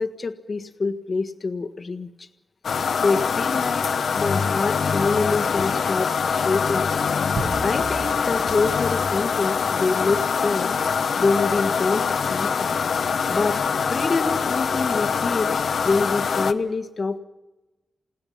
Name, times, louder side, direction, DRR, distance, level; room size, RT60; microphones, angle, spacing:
voice 1, 0.0-2.3 3.0-6.9 7.6-10.7 11.2-12.7 13.3-13.6 13.9-17.2, left 4 dB, 50° left, 6 dB, 1.5 m, -26 dB
sound 1, 2.6-16.5, left 6 dB, 85° left, 1.0 m, -24 dB
sound 2, 7.4-10.2, right 4 dB, 65° right, 1.0 m, -36 dB
29.0 x 18.0 x 5.7 m, 1.1 s
wide cardioid pair, 90°, 0 cm